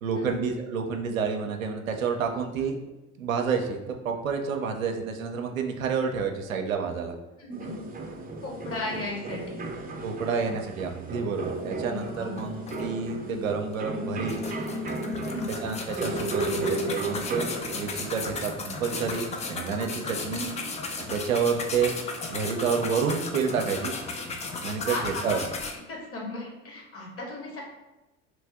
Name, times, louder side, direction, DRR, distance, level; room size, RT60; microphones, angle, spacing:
voice 1, 0.0-2.8 3.2-7.2 10.0-14.3 15.5-20.4 21.1-21.9 22.3-23.9 24.6-25.4, right 6 dB, 85° right, 4 dB, 0.5 m, -29 dB
voice 2, 7.4-7.8 8.4-9.6 11.9-12.3 15.2-15.5 20.0-20.5 24.8-25.4 25.9-27.6, left 2 dB, 35° left, -1 dB, 1.2 m, -36 dB
sound 1, 7.5-24.4, right 2 dB, 20° right, 0.6 m, -36 dB
sound 2, 12.0-12.1 12.4-13.3 13.7-13.8 14.3-25.7, left 3 dB, 20° left, 0.4 m, -35 dB
3.0 x 2.6 x 3.4 m, 1.0 s
hypercardioid pair, 65°, 39 cm